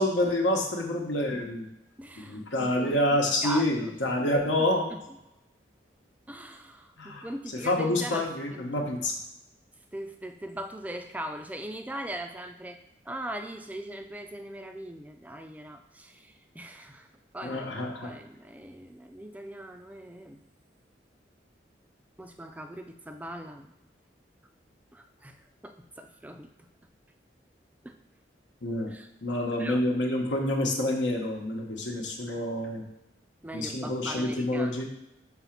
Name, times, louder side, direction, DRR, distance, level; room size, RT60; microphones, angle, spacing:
voice 1, 0.0-1.6 2.2-4.9 7.0-7.3 7.6-9.1 17.4-18.1 28.6-28.9 29.2-32.8 33.5-34.8, left 1 dB, 80° left, 0 dB, 1.0 m, -27 dB
voice 2, 2.0-3.0 3.4-4.0 4.6-5.0 6.3-8.3 8.5-8.9 9.9-12.8 13.1-17.1 17.3-20.4 22.2-23.7 24.9-25.4 25.6-26.5 27.8-28.0 28.9-29.1 29.6-29.8 33.4-34.8, right 1 dB, 10° right, 6 dB, 0.4 m, -40 dB
4.9 x 4.1 x 5.8 m, 0.89 s
head